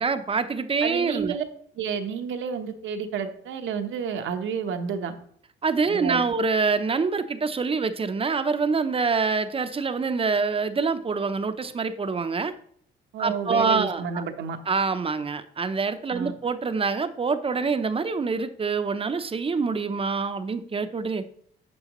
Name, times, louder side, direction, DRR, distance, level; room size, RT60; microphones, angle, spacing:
voice 1, 0.0-1.4 5.6-12.5 13.2-14.2 14.7-21.2, right 4 dB, 30° right, 10 dB, 0.6 m, -25 dB
voice 2, 0.8-1.4 1.7-5.1 5.9-6.2 13.1-14.6 16.1-16.3, right 6 dB, 75° right, 6 dB, 0.9 m, -30 dB
9.8 x 6.2 x 3.0 m, 0.62 s
cardioid pair, 90°, 20 cm